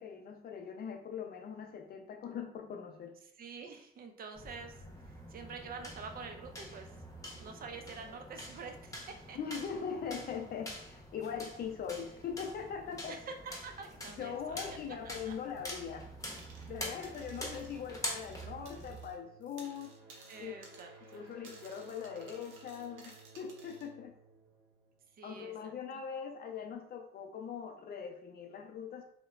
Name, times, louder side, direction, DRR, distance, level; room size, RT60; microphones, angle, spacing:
voice 1, 0.0-3.1 9.3-13.2 14.2-16.0 16.7-19.9 20.4-20.5 21.1-24.1 25.2-29.0, left 7 dB, 50° left, 3 dB, 0.5 m, -41 dB
voice 2, 3.4-6.9 7.4-9.4 13.1-14.6 15.0-15.3 20.3-21.3 25.2-25.7, right 5 dB, 50° right, 5 dB, 0.5 m, -47 dB
sound 1, 4.4-19.1, equal, 15° left, 0.8 m, -46 dB
sound 2, 16.4-16.7 17.0-19.2 19.4-23.9, right 3 dB, 90° right, 0.6 m, -57 dB
sound 3, 18.9-25.6, right 3 dB, 15° right, 1.0 m, -58 dB
2.8 x 2.1 x 2.4 m, 0.70 s
cardioid pair, 90°, 20 cm